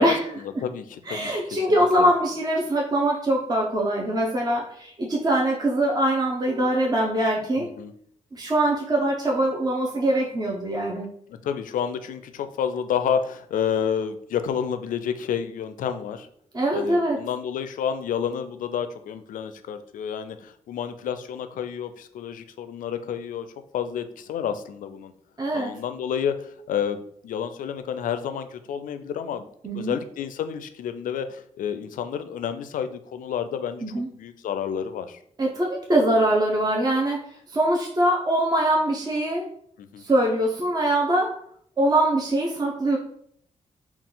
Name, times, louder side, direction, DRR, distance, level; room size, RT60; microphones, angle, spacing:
voice 1, 0.0-2.1 7.6-7.9 11.3-16.3 16.7-23.5 23.7-25.1 25.5-29.5 29.7-35.2 39.8-40.0, left 8 dB, 85° left, 9 dB, 0.4 m, -30 dB
voice 2, 1.1-7.7 8.3-11.1 16.5-17.2 25.4-25.7 29.6-30.0 33.8-34.1 35.4-37.2 37.5-39.5 40.0-41.4 41.8-43.0, right 1 dB, 30° right, -1 dB, 0.7 m, -23 dB
3.9 x 2.3 x 3.8 m, 0.66 s
cardioid pair, 85°, 14 cm